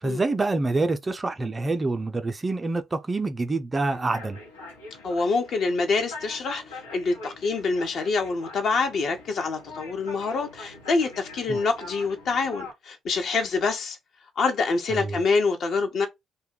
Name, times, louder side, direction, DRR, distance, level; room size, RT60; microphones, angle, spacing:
voice 1, 0.0-4.4 11.5-11.6 14.9-15.2, right 3 dB, 25° right, 0.5 m, -26 dB
sound 1, 3.9-12.7, left 2 dB, 85° left, 0.9 m, -43 dB
voice 2, 5.0-14.0 14.4-16.1, left 4 dB, 50° left, 0.8 m, -26 dB
2.8 x 2.2 x 3.7 m
figure-of-eight pair, 45°, 0 cm